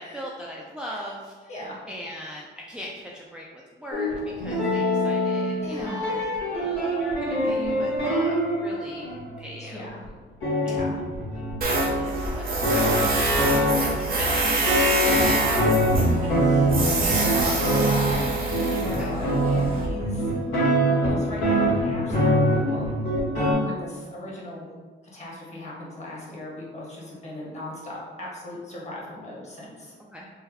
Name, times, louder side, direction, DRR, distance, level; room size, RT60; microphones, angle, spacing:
voice 1, 0.0-1.5 1.9-4.1 4.4-6.2 6.4-9.9 12.0-15.3 19.0-19.2 30.1-30.3, equal, 5° right, -4 dB, 0.4 m, -39 dB
sound 1, 3.9-9.4 10.0-10.1 10.4-23.5, equal, 90° left, 1.4 m, -24 dB
voice 2, 5.6-6.2 9.6-10.0 10.6-11.0 15.3-15.9 16.2-20.3 20.8-22.9 23.6-24.7 25.1-29.9, left 1 dB, 35° left, -4 dB, 1.2 m, -37 dB
Tools, 11.6-19.9, right 3 dB, 50° right, 0.8 m, -26 dB
3.4 x 2.2 x 3.4 m, 1.4 s
cardioid pair, 90°, 20 cm